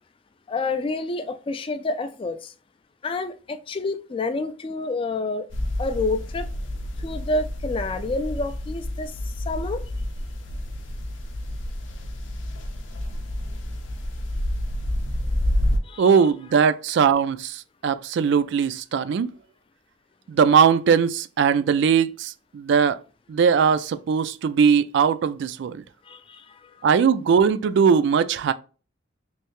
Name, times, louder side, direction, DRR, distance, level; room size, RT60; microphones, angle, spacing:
voice 1, 0.5-2.5 3.0-5.5 5.8-6.5 7.0-9.8 15.8-16.1 26.0-26.9, left 3 dB, 25° left, 0.3 m, -29 dB
sound 1, 5.5-15.8, left 1 dB, 70° left, 0.6 m, -29 dB
voice 2, 16.0-19.3 20.3-23.0 23.3-25.8 26.8-28.5, right 6 dB, 60° right, 0.3 m, -20 dB
3.2 x 2.7 x 3.0 m
head